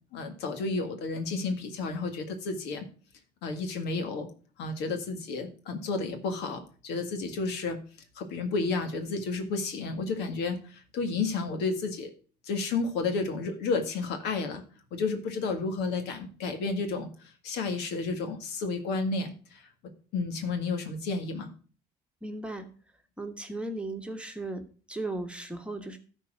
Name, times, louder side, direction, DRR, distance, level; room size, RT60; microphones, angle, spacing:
voice 1, 0.1-2.9 3.4-4.3 4.6-7.8 8.2-12.1 12.4-14.6 14.9-19.7 20.1-21.5, left 4 dB, 90° left, 6 dB, 1.9 m, -31 dB
voice 2, 22.2-22.7 23.2-24.6 24.9-26.0, right 2 dB, 5° right, 4 dB, 1.5 m, -36 dB
13.0 x 4.6 x 6.1 m, 0.39 s
cardioid pair, 110°, 17 cm